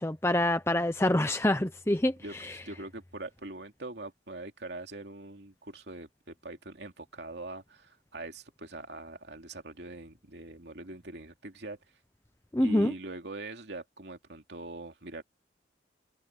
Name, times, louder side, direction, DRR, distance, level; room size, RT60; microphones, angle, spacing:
voice 1, 0.0-2.1 2.4-2.5 12.5-12.9, left 1 dB, 15° left, 0.7 m, -26 dB
voice 2, 2.6-11.8 12.6-15.2, right 2 dB, 70° right, 2.6 m, -42 dB
head